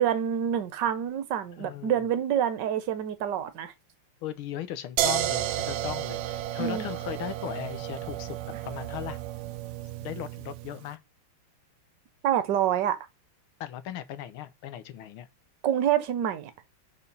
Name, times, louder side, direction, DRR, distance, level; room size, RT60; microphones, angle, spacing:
voice 1, 0.0-3.7 6.6-6.8 12.2-13.0 15.6-16.5, right 10 dB, 60° right, 1.4 m, -27 dB
voice 2, 1.6-2.0 4.2-8.4 8.7-9.2 10.0-11.0 13.6-15.3, left 11 dB, 75° left, 1.6 m, -37 dB
sound 1, 5.0-10.8, right 12 dB, 85° right, 0.8 m, -32 dB
5.2 x 4.4 x 5.4 m
omnidirectional pair, 2.4 m